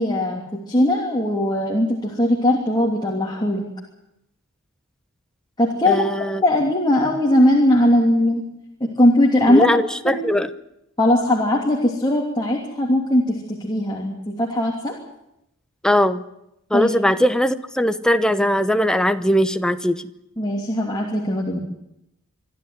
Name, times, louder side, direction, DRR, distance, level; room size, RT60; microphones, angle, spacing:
voice 1, 0.0-3.6 5.6-8.4 8.8-9.7 10.0-10.2 11.0-14.9 16.7-16.9 20.4-21.6, left 1 dB, 20° left, -2 dB, 2.9 m, -19 dB
voice 2, 5.8-6.4 9.5-10.5 15.8-16.2 16.7-20.0, equal, 5° left, 10 dB, 0.8 m, -20 dB
25.0 x 12.5 x 9.5 m, 0.83 s
head